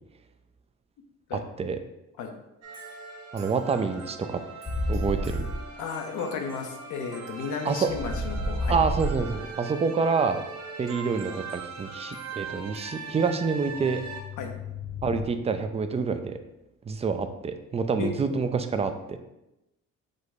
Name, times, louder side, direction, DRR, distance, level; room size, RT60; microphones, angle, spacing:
voice 1, 1.3-1.8 3.3-4.4 4.9-5.5 7.6-7.9 8.7-10.4 10.8-14.0 15.0-16.4 16.9-19.2, right 5 dB, 20° right, 9 dB, 0.3 m, -27 dB
sound 1, 2.6-14.2, right 4 dB, 60° right, 0.9 m, -40 dB
sound 2, 4.7-5.7 7.9-9.5 13.7-15.3, left 1 dB, 15° left, 0.8 m, -31 dB
voice 2, 5.8-8.8 14.4-14.5 18.0-18.4, left 5 dB, 80° left, 4 dB, 0.7 m, -34 dB
4.9 x 2.2 x 4.1 m, 0.91 s
cardioid pair, 90°, 30 cm